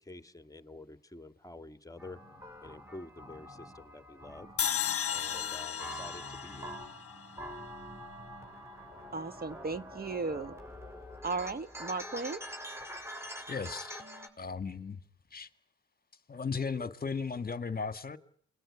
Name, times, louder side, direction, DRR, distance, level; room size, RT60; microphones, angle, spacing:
voice 1, 0.0-2.2 2.6-3.5 3.8-4.5 5.1-6.7, left 2 dB, 10° left, 1.9 m, -48 dB
sound 1, 2.0-14.3, equal, 10° right, 7.6 m, -46 dB
sound 2, 4.6-7.8, left 9 dB, 50° left, 1.1 m, -35 dB
voice 2, 9.1-10.5 11.2-12.4, right 4 dB, 30° right, 1.4 m, -35 dB
voice 3, 13.5-14.0 14.4-15.0 15.3-15.5 16.3-18.2, left 5 dB, 30° left, 1.9 m, -36 dB
28.5 x 21.5 x 9.9 m
cardioid pair, 90°, 30 cm